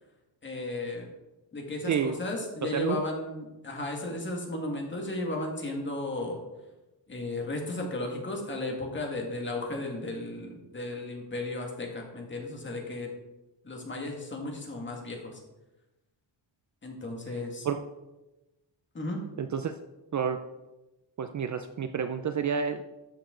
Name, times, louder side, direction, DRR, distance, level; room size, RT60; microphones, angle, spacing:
voice 1, 0.4-1.1 1.5-6.4 7.1-13.1 13.6-15.4 16.8-17.7 18.9-19.2, left 2 dB, 25° left, 1 dB, 2.1 m, -34 dB
voice 2, 19.4-19.7 20.1-20.4 21.2-22.8, right 7 dB, 40° right, 8 dB, 0.5 m, -29 dB
13.0 x 6.8 x 3.9 m, 1.0 s
wide cardioid pair, 160°, 45 cm